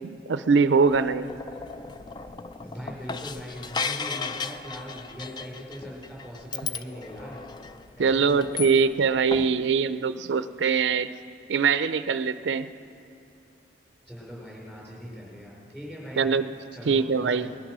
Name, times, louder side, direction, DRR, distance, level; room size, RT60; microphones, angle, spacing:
voice 1, 0.1-1.3 8.0-11.1 11.5-12.7 16.2-16.5 16.9-17.5, right 5 dB, 75° right, 13 dB, 0.4 m, -23 dB
sound 1, 0.7-9.0 9.3-9.5, left 5 dB, 25° left, 0.4 m, -36 dB
voice 2, 2.6-7.4 7.9-8.8 14.1-16.3 16.7-17.6, equal, 5° left, -5 dB, 4.7 m, -40 dB
20.0 x 11.5 x 6.1 m, 2.7 s
head